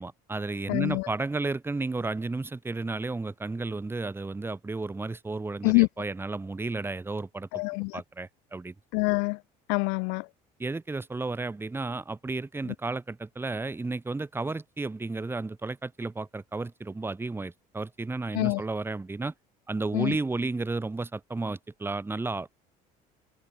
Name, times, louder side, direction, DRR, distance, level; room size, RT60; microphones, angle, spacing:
voice 1, 0.0-7.5 7.9-8.7 10.6-19.3 19.7-22.5, right 3 dB, 10° right, 2.1 m, -33 dB
voice 2, 0.7-1.1 5.6-5.9 7.5-8.0 8.9-9.4 9.7-10.3 12.6-12.7 18.3-18.6 19.9-20.2, left 40 dB or more, 90° left, 0.7 m, -25 dB
cardioid pair, 120°, 18 cm